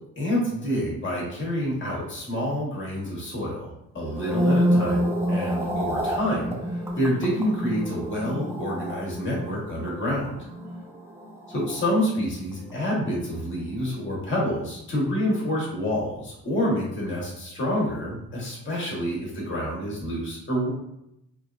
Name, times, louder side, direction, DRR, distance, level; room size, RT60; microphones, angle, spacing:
voice 1, 0.2-10.3 11.5-20.7, equal, 40° left, -4 dB, 1.1 m, -28 dB
sound 1, 4.0-12.4 12.7-13.1, equal, 10° right, 0.5 m, -28 dB
2.9 x 2.2 x 2.3 m, 0.81 s
cardioid pair, 90°, 30 cm